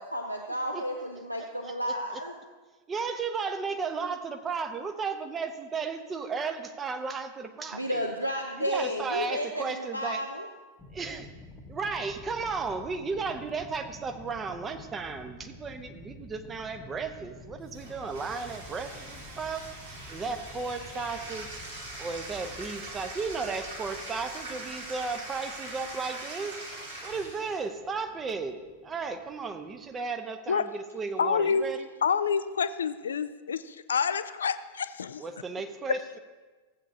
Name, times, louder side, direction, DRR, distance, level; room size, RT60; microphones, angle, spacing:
voice 1, 0.0-2.3 7.7-10.4, equal, 90° right, 3 dB, 0.6 m, -32 dB
voice 2, 0.7-1.0 1.4-2.2 2.9-8.1 8.6-10.2 10.9-11.3 11.7-19.7 20.1-21.6 22.0-26.6 27.0-31.9 35.2-36.2, right 4 dB, 20° right, 8 dB, 0.8 m, -34 dB
sound 1, 10.8-29.9, left 1 dB, 15° left, 0.9 m, -50 dB
Bathtub (filling or washing), 17.7-27.7, right 2 dB, 65° right, 2.6 m, -42 dB
voice 3, 31.2-31.6 32.0-35.2, left 6 dB, 70° left, 13 dB, 0.3 m, -28 dB
15.0 x 8.3 x 2.7 m, 1.3 s
figure-of-eight pair, 90°, 0 cm